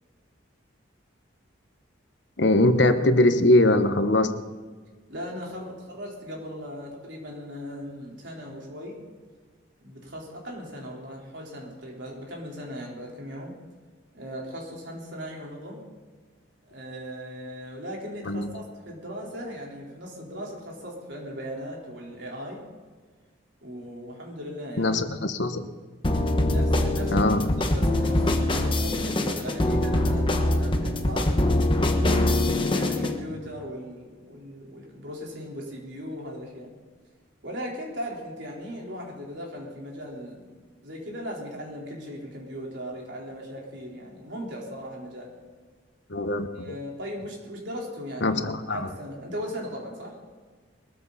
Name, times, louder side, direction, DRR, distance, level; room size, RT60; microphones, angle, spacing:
voice 1, 2.4-4.3 18.2-18.5 24.8-25.7 27.1-27.4 46.1-46.5 48.2-48.9, left 1 dB, 65° left, 9 dB, 1.1 m, -21 dB
voice 2, 5.1-9.0 9.8-13.6 14.1-15.8 16.7-22.7 23.6-25.0 26.4-27.2 27.6-31.3 31.9-36.7 37.4-40.4 40.8-45.3 46.5-48.4 48.7-50.2, equal, 65° right, -2 dB, 4.2 m, -38 dB
sound 1, 26.0-33.2, left 1 dB, 25° left, 1.2 m, -23 dB
22.0 x 14.0 x 4.2 m, 1.5 s
head